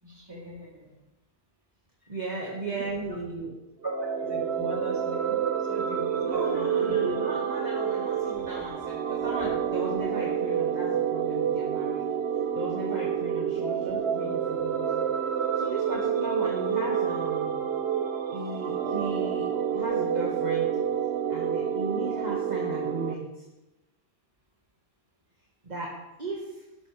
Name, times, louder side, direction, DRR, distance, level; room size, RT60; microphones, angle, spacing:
voice 1, 0.0-0.9 2.0-2.2 2.7-2.9 3.8-7.1, right 1 dB, 20° right, -4 dB, 3.4 m, -38 dB
voice 2, 2.1-3.5 6.2-12.0 12.5-15.1 15.6-17.6 18.3-19.5 19.7-20.7 21.3-23.3 25.6-25.9 26.2-26.5, right 2 dB, 40° right, -4 dB, 2.0 m, -35 dB
sound 1, 3.8-23.1, right 8 dB, 75° right, 1.0 m, -28 dB
13.5 x 12.5 x 3.4 m, 1.0 s
omnidirectional pair, 1.1 m